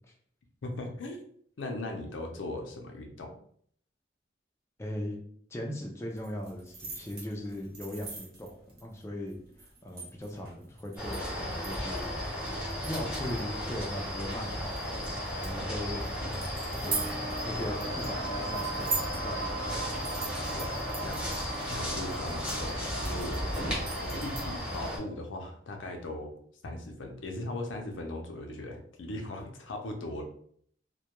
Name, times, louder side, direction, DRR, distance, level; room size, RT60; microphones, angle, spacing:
voice 1, 0.6-1.2 1.6-3.3 20.5-21.2 21.7-26.3 26.6-30.2, left 2 dB, 90° left, 3 dB, 0.5 m, -39 dB
voice 2, 4.8-5.2 5.5-12.2 12.8-16.4 16.8-20.0, left 1 dB, 15° left, 0 dB, 0.3 m, -39 dB
sound 1, 6.1-24.8, right 3 dB, 55° right, 0.9 m, -42 dB
sound 2, 11.0-25.0, equal, 5° right, 0.8 m, -35 dB
sound 3, 16.8-24.6, right 2 dB, 90° right, 0.7 m, -39 dB
2.2 x 2.1 x 2.8 m, 0.62 s
head